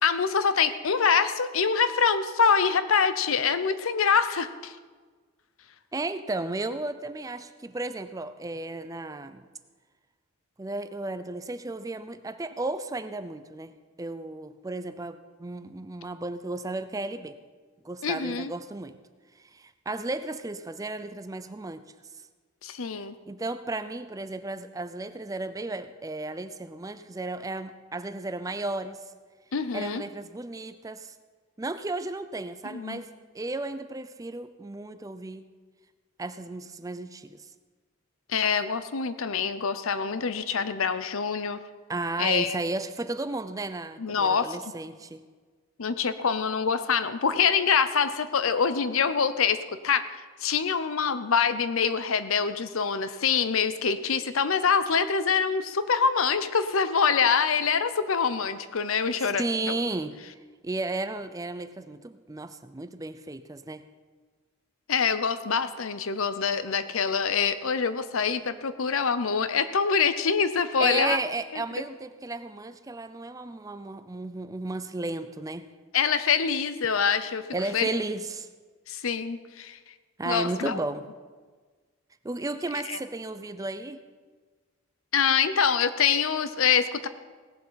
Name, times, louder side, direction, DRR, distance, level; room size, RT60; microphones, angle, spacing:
voice 1, 0.0-4.7 18.0-18.5 22.6-23.1 29.5-30.0 32.7-33.0 38.3-41.6 42.2-42.6 44.0-44.6 45.8-49.6 49.8-59.4 64.9-71.2 71.5-71.6 75.9-77.4 77.7-77.9 78.9-79.8 80.2-80.8 82.9-83.0 85.1-87.1, left 6 dB, 75° left, 12 dB, 0.7 m, -25 dB
voice 2, 5.9-9.4 10.6-17.4 17.8-19.0 19.5-21.9 22.9-29.0 29.7-31.1 31.6-33.1 33.3-35.4 36.2-37.5 41.9-45.2 59.4-60.2 60.6-63.9 70.8-75.7 77.5-78.5 80.2-81.1 82.2-84.0, right 2 dB, 15° right, 11 dB, 0.4 m, -34 dB
17.5 x 7.7 x 5.6 m, 1.5 s
head